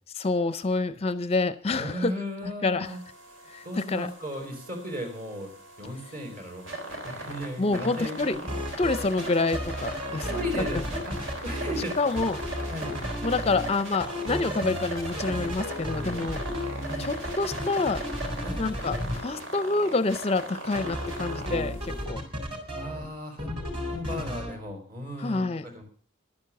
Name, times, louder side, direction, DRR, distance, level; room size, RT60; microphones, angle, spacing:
voice 1, 0.1-2.1 2.4-3.0 3.5-4.1 7.6-8.4 8.8-10.3 10.7-10.8 12.0-12.4 13.2-16.4 17.0-18.0 18.6-22.2 25.2-25.8, left 3 dB, 30° left, 12 dB, 0.5 m, -27 dB
voice 2, 1.8-3.0 3.6-5.5 5.8-6.6 7.0-8.6 10.3-12.1 12.7-12.9 16.8-17.1 18.4-18.7 22.7-25.8, equal, 45° right, 4 dB, 4.3 m, -36 dB
sound 1, 2.8-22.0, right 2 dB, 70° right, 3.6 m, -39 dB
sound 2, 8.5-9.3 9.5-11.8 12.2-13.7 14.0-19.2 20.8-23.1 23.4-24.5, equal, 30° right, 3.9 m, -33 dB
11.5 x 9.5 x 7.0 m, 0.43 s
head